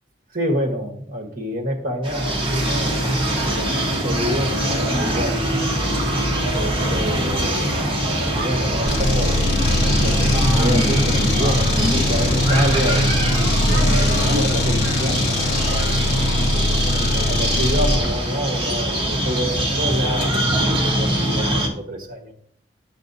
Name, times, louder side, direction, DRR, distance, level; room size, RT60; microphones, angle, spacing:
voice 1, 0.3-5.4 6.5-7.8 8.3-9.4 9.7-15.4 16.5-22.3, equal, 50° right, 3 dB, 1.2 m, -28 dB
sound 1, 2.0-21.7, right 1 dB, 30° right, 1.1 m, -22 dB
sound 2, 8.9-18.1, left 2 dB, 60° left, 1.1 m, -22 dB
9.1 x 7.0 x 2.6 m, 0.64 s
head